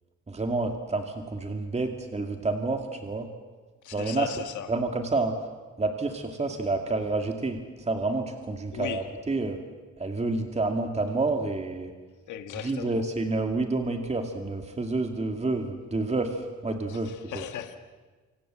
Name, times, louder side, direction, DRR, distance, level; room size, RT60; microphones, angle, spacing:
voice 1, 0.3-3.3 3.9-4.3 4.7-5.3 5.8-9.6 10.0-11.9 12.6-17.4, right 3 dB, 20° right, 4 dB, 2.3 m, -29 dB
voice 2, 3.8-4.7 8.7-9.1 12.3-13.0 16.9-17.8, left 10 dB, 80° left, 8 dB, 1.6 m, -37 dB
28.0 x 25.5 x 7.7 m, 1.4 s
cardioid pair, 90°, 30 cm